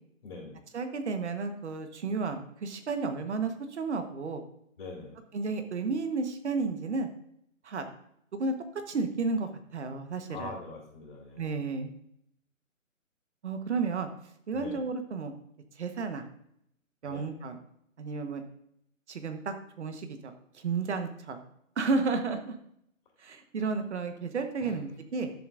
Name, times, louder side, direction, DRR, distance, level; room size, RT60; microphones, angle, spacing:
voice 1, 0.2-0.6 4.8-5.2 10.3-11.6 14.5-14.8 17.1-17.3 23.2-23.3 24.6-24.8, left 3 dB, 40° left, -2 dB, 3.1 m, -43 dB
voice 2, 0.7-4.4 5.3-7.1 7.6-7.9 8.3-10.5 11.4-11.9 13.4-14.1 14.5-15.3 15.7-16.3 17.0-17.6 18.0-18.4 19.1-21.4 21.8-22.6 23.2-25.3, right 4 dB, 55° right, 8 dB, 1.2 m, -32 dB
12.5 x 7.2 x 2.5 m, 0.73 s
hypercardioid pair, 155°, 40 cm